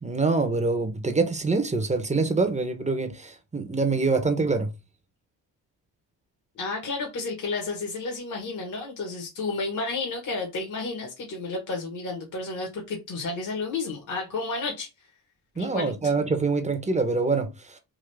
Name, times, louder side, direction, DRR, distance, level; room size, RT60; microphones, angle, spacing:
voice 1, 0.0-4.7 15.6-17.8, right 3 dB, 15° right, 0.9 m, -25 dB
voice 2, 6.5-14.9 15.5-15.9, left 3 dB, 45° left, 1.3 m, -31 dB
3.8 x 2.4 x 3.3 m
cardioid pair, 75°, 42 cm